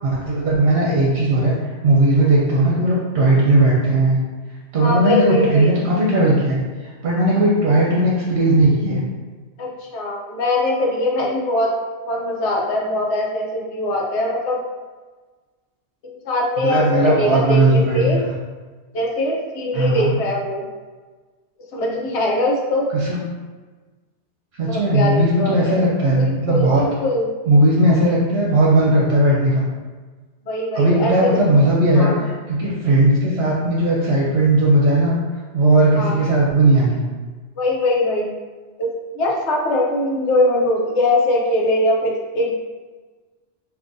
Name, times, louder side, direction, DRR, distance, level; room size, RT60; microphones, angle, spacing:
voice 1, 0.0-4.2 4.7-6.6 7.0-9.0 16.6-18.3 19.7-20.2 22.9-23.2 24.6-26.9 27.5-29.6 30.7-35.2 35.5-37.0, right 1 dB, 70° right, -4 dB, 0.9 m, -17 dB
voice 2, 4.7-5.8 9.6-11.8 12.1-14.6 16.0-18.2 18.9-20.6 21.6-22.9 24.7-25.8 26.2-27.3 30.5-31.4 31.9-32.2 35.9-36.2 37.6-38.4 38.8-42.5, left 1 dB, 85° left, -1 dB, 0.9 m, -21 dB
3.7 x 2.6 x 2.5 m, 1.4 s
omnidirectional pair, 1.1 m